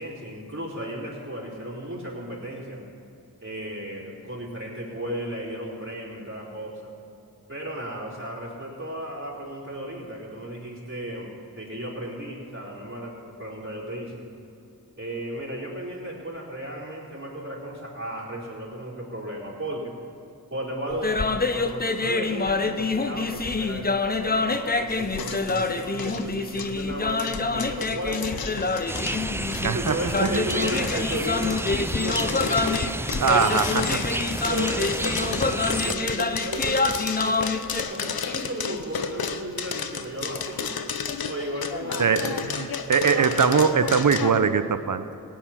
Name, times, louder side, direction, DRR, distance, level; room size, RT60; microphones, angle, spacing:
voice 1, 0.0-2.8 3.4-6.9 7.5-14.2 15.0-19.9 20.5-28.7 29.7-32.6 33.2-33.6 34.4-40.8 41.3-42.4 43.0-43.9, right 1 dB, 35° right, -5 dB, 4.1 m, -34 dB
sound 1, 20.9-37.8, left 3 dB, 25° left, 0.8 m, -27 dB
sound 2, 24.9-44.3, left 6 dB, 70° left, 0.8 m, -33 dB
sound 3, 28.9-36.0, right 1 dB, 5° right, 0.4 m, -31 dB
voice 2, 29.6-30.4 33.2-33.8 42.0-45.2, right 6 dB, 55° right, 11 dB, 0.9 m, -22 dB
17.0 x 9.3 x 5.9 m, 2.7 s
cardioid pair, 50°, 38 cm